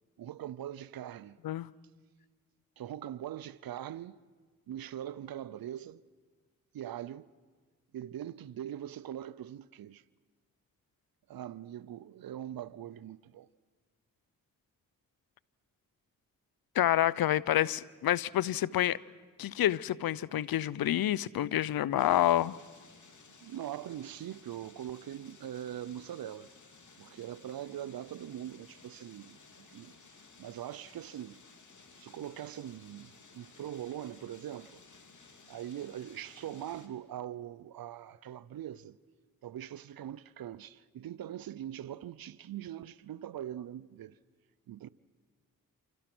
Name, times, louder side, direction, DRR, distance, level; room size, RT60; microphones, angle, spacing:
voice 1, 0.2-1.4 2.8-4.2 4.7-6.0 6.7-7.3 7.9-10.0 11.3-13.5 23.4-26.5 27.0-29.9 30.4-31.4 32.0-34.8 35.5-39.0 39.4-44.1 44.7-44.9, right 11 dB, 75° right, 0.6 m, -42 dB
voice 2, 16.8-19.0 19.4-22.5, left 12 dB, 80° left, 0.6 m, -28 dB
sound 1, 22.0-36.9, left 4 dB, 55° left, 3.2 m, -57 dB
28.5 x 27.0 x 6.1 m
cardioid pair, 45°, 35 cm